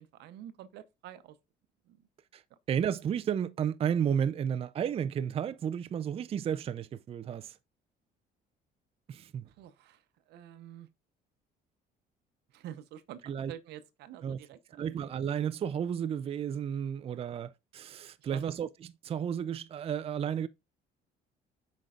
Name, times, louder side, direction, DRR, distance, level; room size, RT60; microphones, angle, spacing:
voice 1, 0.0-1.4 1.9-2.0 2.5-2.6 9.5-10.9 12.5-15.0 18.2-18.4, right 11 dB, 80° right, 0.8 m, -48 dB
voice 2, 2.7-7.6 9.1-9.5 13.2-13.5 14.2-14.4 14.8-18.7 19.0-20.5, right 8 dB, 35° right, 0.4 m, -32 dB
7.6 x 5.2 x 2.4 m
cardioid pair, 110°, 17 cm